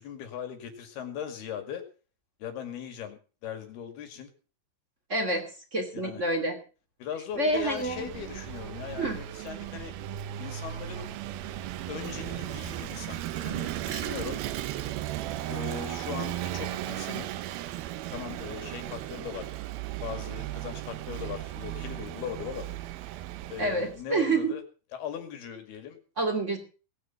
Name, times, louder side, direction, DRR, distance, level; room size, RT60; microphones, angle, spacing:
voice 1, 0.0-1.8 2.4-4.3 5.9-6.2 7.0-9.9 10.4-11.1 11.9-14.4 15.5-17.3 18.1-19.5 20.0-22.7 23.5-24.6 24.9-26.0, left 8 dB, 60° left, 7 dB, 3.8 m, -39 dB
voice 2, 5.1-5.4 5.7-6.6 7.4-8.1 9.0-9.2 23.6-24.6 26.2-26.6, right 2 dB, 25° right, 5 dB, 1.7 m, -27 dB
Vehicle / Engine, 7.4-24.0, right 13 dB, 80° right, 2.1 m, -36 dB
19.0 x 9.7 x 5.9 m, 0.36 s
omnidirectional pair, 5.6 m